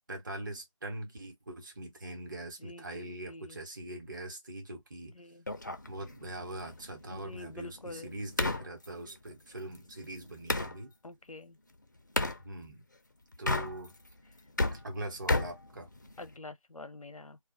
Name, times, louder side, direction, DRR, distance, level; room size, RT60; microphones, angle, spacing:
voice 1, 0.1-5.2 5.9-10.9 12.4-12.8 13.4-13.9 14.7-15.9, right 1 dB, 35° right, 1.1 m, -42 dB
voice 2, 2.6-3.6 5.1-5.5 7.1-8.1 11.0-11.6 16.2-17.4, left 2 dB, 90° left, 0.6 m, -47 dB
sound 1, 5.5-10.8 12.2-12.4 13.3-14.1 14.4-16.4, left 2 dB, 35° left, 0.4 m, -34 dB
2.3 x 2.3 x 3.9 m
figure-of-eight pair, 160°, 17 cm